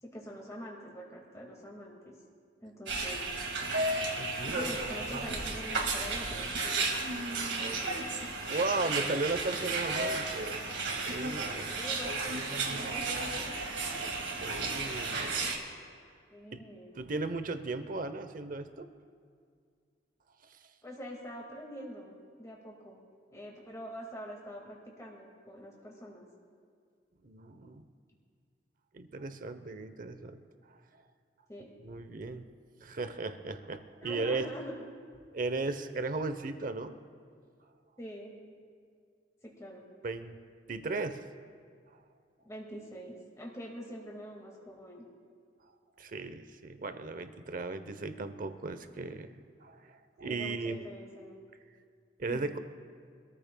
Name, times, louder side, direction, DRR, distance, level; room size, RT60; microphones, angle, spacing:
voice 1, 0.0-2.2 2.6-3.3 4.5-6.9 11.7-13.1 13.4-13.5 13.9-14.0 16.3-16.9 20.8-23.0 23.3-26.3 31.5-31.7 34.0-34.8 38.0-38.4 39.4-39.9 42.4-45.1 50.2-51.4 52.3-52.5, equal, 20° left, -2 dB, 2.0 m, -45 dB
sound 1, 2.9-15.6, right 3 dB, 80° right, 2.0 m, -33 dB
voice 2, 4.1-4.8 5.1-5.3 7.6-7.7 8.4-11.7 14.4-15.4 16.5-16.6 17.0-18.9 20.4-20.6 27.2-27.9 28.9-30.4 30.7-31.0 31.8-32.4 32.8-34.5 35.3-37.0 40.0-40.4 40.7-41.2 46.0-50.8 52.2-52.6, right 3 dB, 50° right, 10 dB, 0.8 m, -36 dB
25.0 x 14.0 x 2.3 m, 2.2 s
head